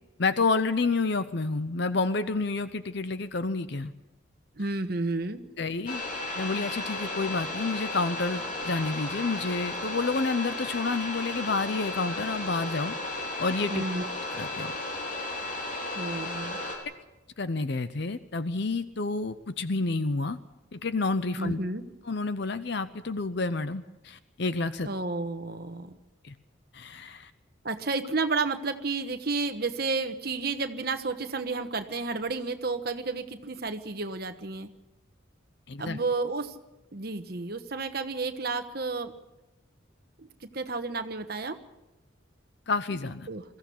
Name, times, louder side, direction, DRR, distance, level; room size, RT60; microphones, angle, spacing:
voice 1, 0.2-3.9 5.6-6.0 6.4-12.9 13.4-13.8 14.4-14.7 17.4-20.4 20.7-21.6 22.1-24.9 26.2-26.3 26.7-27.3 35.7-36.0 42.7-43.3, left 3 dB, 55° left, 12 dB, 0.7 m, -29 dB
voice 2, 4.6-5.4 13.7-14.1 15.9-16.6 21.4-21.8 24.8-26.0 27.6-34.7 35.8-36.6 36.9-39.1 40.2-41.6 43.3-43.4, right 3 dB, 50° right, 7 dB, 1.2 m, -31 dB
sound 1, 5.9-16.8, left 2 dB, 40° left, 3.9 m, -34 dB
22.0 x 15.0 x 8.5 m, 1.0 s
head